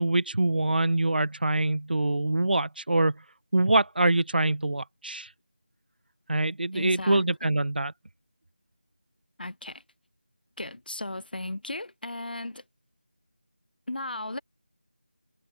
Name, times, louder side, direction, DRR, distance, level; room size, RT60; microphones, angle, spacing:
voice 1, 0.0-3.2 3.5-5.3 6.3-7.9, right 2 dB, 70° right, 0.7 m, -24 dB
voice 2, 6.7-7.2 9.4-9.8 10.6-12.6 13.9-14.4, left 2 dB, 70° left, 0.8 m, -35 dB
figure-of-eight pair, 170°, 5 cm